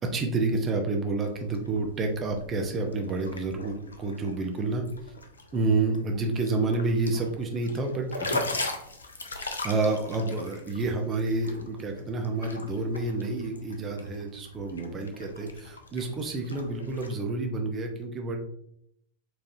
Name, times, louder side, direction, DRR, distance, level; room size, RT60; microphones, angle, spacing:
voice 1, 0.0-4.8 5.5-8.4 9.3-18.4, right 3 dB, 25° right, 3 dB, 0.7 m, -29 dB
sound 1, 1.2-17.1, left 3 dB, 75° left, 0.5 m, -40 dB
4.5 x 3.1 x 2.7 m, 0.72 s
figure-of-eight pair, 90°, 0 cm